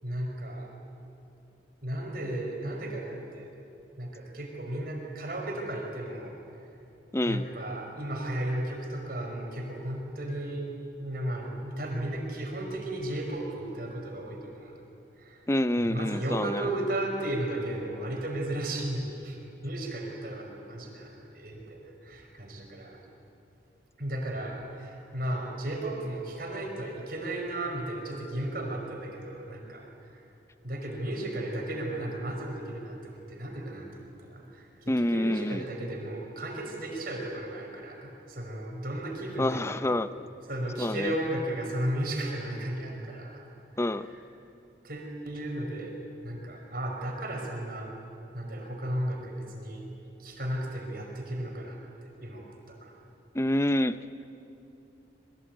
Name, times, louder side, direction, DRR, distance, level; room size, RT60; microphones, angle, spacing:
voice 1, 0.0-0.7 1.8-3.5 4.0-6.4 7.2-10.7 11.0-14.8 15.2-15.4 15.8-23.0 24.0-30.2 30.6-39.9 40.5-43.4 43.7-44.1 44.8-46.0 46.2-47.9 48.3-49.8 50.2-52.9, right 1 dB, 55° right, 1 dB, 5.2 m, -35 dB
voice 2, 7.1-7.4 15.5-16.6 34.9-35.6 39.4-40.1 40.8-41.1 43.8-44.1 53.3-54.0, left 1 dB, 15° left, 13 dB, 0.5 m, -27 dB
27.0 x 23.0 x 9.2 m, 2.7 s
head